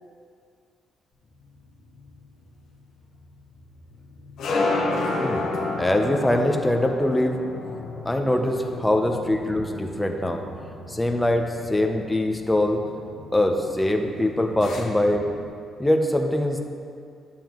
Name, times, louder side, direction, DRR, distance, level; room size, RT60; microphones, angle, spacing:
sound 1, 1.4-15.5, left 2 dB, 85° left, 1.2 m, -32 dB
voice 1, 5.8-7.4 8.1-10.4 10.9-12.8 13.3-15.2 15.8-16.6, left 1 dB, 10° left, 3 dB, 0.8 m, -23 dB
11.0 x 7.3 x 3.0 m, 2.3 s
cardioid pair, 90°, 0 cm